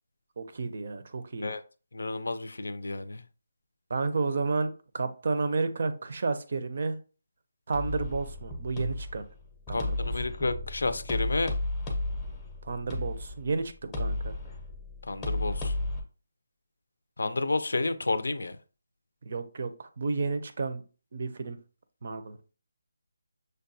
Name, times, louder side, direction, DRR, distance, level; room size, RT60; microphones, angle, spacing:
voice 1, 0.4-1.5 3.9-7.0 7.7-9.2 9.7-10.1 12.6-14.3 19.3-20.8 21.1-21.6 22.0-22.5, right 4 dB, 45° right, 0.5 m, -31 dB
voice 2, 1.9-3.2 9.7-11.5 15.1-15.8 17.2-18.6, left 3 dB, 85° left, 0.5 m, -31 dB
sound 1, 7.7-16.0, left 2 dB, 10° left, 0.6 m, -34 dB
6.3 x 2.2 x 2.6 m
hypercardioid pair, 170°, 0 cm